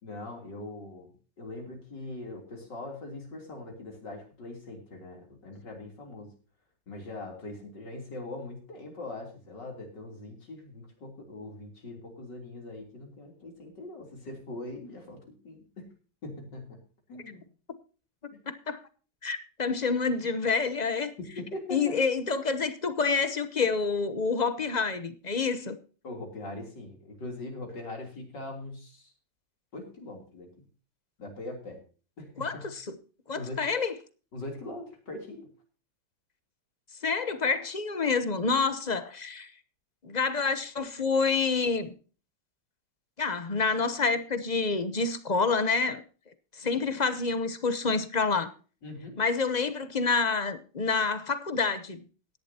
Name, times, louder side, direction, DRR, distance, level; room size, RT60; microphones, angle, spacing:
voice 1, 0.0-6.3 6.9-15.9 16.2-16.8 17.1-17.4 18.3-18.4 20.2-20.4 21.2-22.0 26.0-29.1 29.7-30.5 31.2-31.8 32.2-32.7 33.3-33.7 34.3-35.5 48.8-49.2, left 2 dB, 80° left, 4.0 m, -41 dB
voice 2, 19.2-21.1 21.7-25.8 32.4-33.0 33.3-33.9 37.0-39.5 40.0-41.9 43.2-46.0 46.6-48.5 49.2-52.0, left 4 dB, 35° left, 0.8 m, -28 dB
17.0 x 11.0 x 2.9 m
omnidirectional pair, 1.9 m